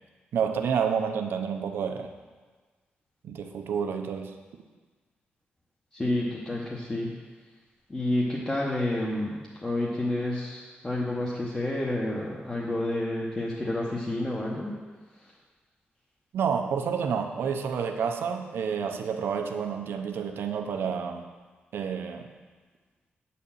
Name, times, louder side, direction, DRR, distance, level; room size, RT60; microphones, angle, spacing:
voice 1, 0.3-2.1 3.2-4.3 16.3-21.2 21.7-22.3, right 7 dB, 85° right, 5 dB, 0.7 m, -29 dB
voice 2, 5.9-7.1 7.9-14.7, left 1 dB, 20° left, -5 dB, 0.9 m, -29 dB
8.5 x 4.2 x 7.2 m, 1.4 s
wide cardioid pair, 145°, 4 cm